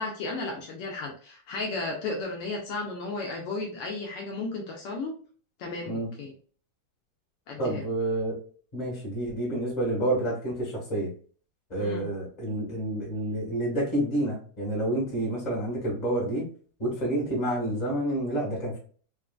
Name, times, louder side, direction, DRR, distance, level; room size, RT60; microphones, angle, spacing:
voice 1, 0.0-5.1 5.6-6.3 7.5-7.9 11.8-12.1, left 3 dB, 80° left, 0 dB, 1.3 m, -34 dB
voice 2, 7.6-8.4 8.7-11.1 11.7-16.4 16.8-18.8, right 1 dB, 30° left, -4 dB, 0.7 m, -29 dB
4.5 x 2.4 x 2.3 m, 0.43 s
omnidirectional pair, 3.3 m